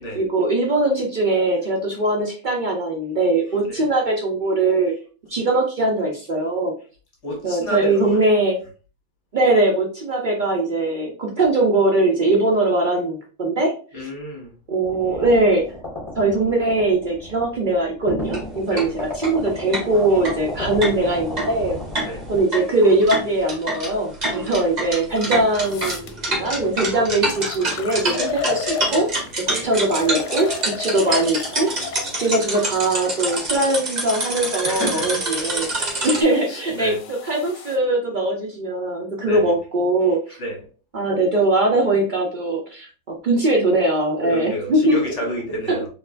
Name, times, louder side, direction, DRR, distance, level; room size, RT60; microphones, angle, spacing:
voice 1, 0.1-4.9 5.3-6.7 7.4-8.6 9.3-14.1 14.7-15.6 16.2-21.8 22.3-29.1 29.5-31.9 32.2-35.7 36.0-40.4 40.9-45.0 45.7-45.8, right 2 dB, 75° right, 0.4 m, -21 dB
voice 2, 7.2-8.2 13.9-14.5 18.7-18.9 20.1-20.2 22.1-22.2 29.5-29.7 34.6-35.2 35.8-35.9 36.5-37.0 39.2-39.5 40.4-40.6 44.3-45.9, equal, 45° left, 1.4 m, -30 dB
sound 1, 14.8-22.4, left 1 dB, 25° left, 1.2 m, -34 dB
sound 2, 18.2-18.4 18.8-18.9 19.2-19.3 19.7-36.2, right 1 dB, 30° right, 1.0 m, -26 dB
sound 3, 25.1-25.2 25.6-26.1 26.8-26.9 27.3-29.4 29.9-33.5 34.3-37.8, left 7 dB, 80° left, 1.1 m, -34 dB
4.4 x 2.8 x 2.5 m
omnidirectional pair, 1.8 m